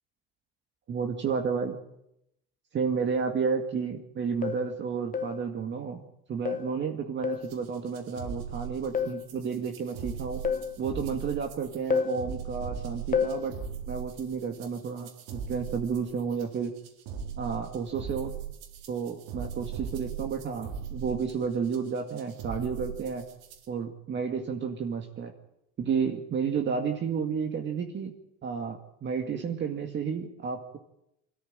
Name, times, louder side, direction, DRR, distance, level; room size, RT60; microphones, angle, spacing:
voice 1, 0.9-1.8 2.7-6.0 6.3-10.4 10.8-13.6 13.9-16.7 17.4-18.3 18.9-23.2 23.7-25.3 25.8-28.1 28.4-30.8, right 6 dB, 35° right, 4 dB, 2.2 m, -31 dB
sound 1, 3.4-3.5 4.4-4.7 5.1-5.4 6.4-6.8 7.2-7.5 8.9-9.3 10.4-10.8 11.9-12.2 13.1-13.4, left 7 dB, 25° left, 1.3 m, -29 dB
sound 2, 7.4-23.7, right 7 dB, 80° right, 4.1 m, -39 dB
25.0 x 14.0 x 9.0 m, 0.80 s
cardioid pair, 140°, 33 cm